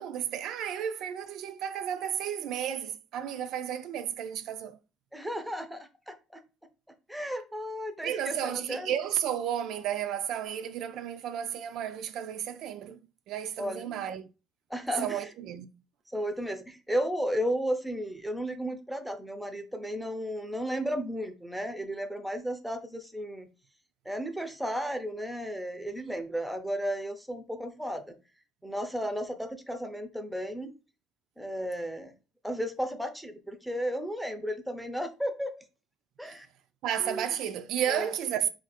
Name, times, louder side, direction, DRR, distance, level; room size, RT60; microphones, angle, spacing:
voice 1, 0.0-4.8 8.0-13.0 13.3-14.3 15.0-15.7 36.2-36.4 36.8-38.5, right 9 dB, 60° right, 0.3 m, -32 dB
voice 2, 5.1-6.4 7.1-8.9 13.6-14.0 14.7-15.3 16.1-23.5 24.1-28.1 28.6-30.7 31.4-32.1 32.4-35.5 36.2-36.5 37.0-37.2 37.9-38.1, equal, ahead, 0.5 m, -34 dB
4.0 x 2.5 x 4.1 m
cardioid pair, 150°, 0 cm